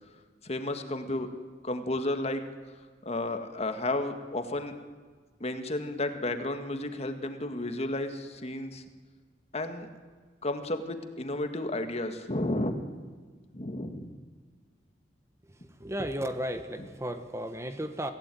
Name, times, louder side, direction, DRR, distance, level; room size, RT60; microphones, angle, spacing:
voice 1, 0.4-1.3 1.6-2.4 3.0-4.7 5.4-8.8 9.5-9.9 10.4-12.7 13.5-14.1, left 2 dB, 35° left, 7 dB, 1.9 m, -32 dB
voice 2, 15.4-18.1, equal, 15° right, 8 dB, 1.2 m, -34 dB
24.5 x 16.0 x 9.2 m, 1.5 s
head